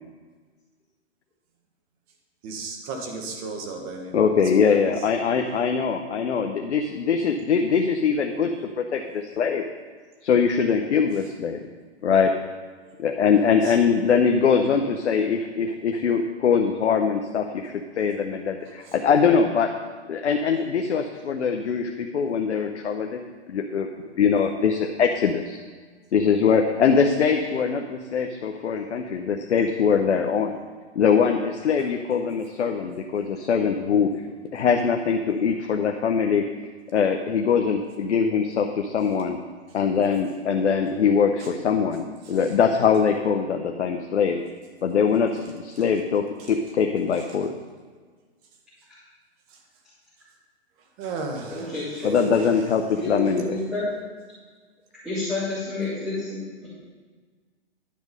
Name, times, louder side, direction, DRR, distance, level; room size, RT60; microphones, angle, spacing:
voice 1, 2.4-4.9 12.8-12.9 13.6-13.8 18.8-19.0 42.2-42.3 49.5-49.6 51.0-52.0 52.4-52.5, right 3 dB, 35° right, 2 dB, 1.5 m, -35 dB
voice 2, 4.1-9.6 10.2-11.6 12.0-12.3 13.0-19.7 20.1-23.9 24.1-25.6 26.1-30.5 31.0-34.1 34.5-36.5 36.9-39.4 39.7-44.4 44.8-47.5 52.0-53.4, left 6 dB, 85° left, 4 dB, 0.8 m, -22 dB
voice 3, 51.5-52.3 52.9-53.9 55.0-56.7, left 2 dB, ahead, -14 dB, 3.2 m, -29 dB
10.5 x 6.3 x 5.4 m, 1.5 s
hypercardioid pair, 140°, 34 cm